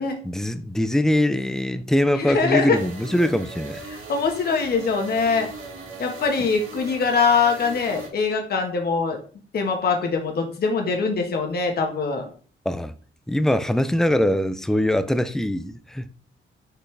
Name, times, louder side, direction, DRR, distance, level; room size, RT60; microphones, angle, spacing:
voice 1, 0.2-3.8 12.7-12.9 13.3-16.1, left 1 dB, ahead, 0.3 m, -22 dB
voice 2, 2.2-2.8 3.9-5.5 6.0-9.2 9.5-12.3, left 5 dB, 50° left, 1.4 m, -23 dB
sound 1, 2.7-8.1, right 3 dB, 75° right, 2.0 m, -38 dB
6.1 x 5.5 x 3.3 m
wide cardioid pair, 175°, 21 cm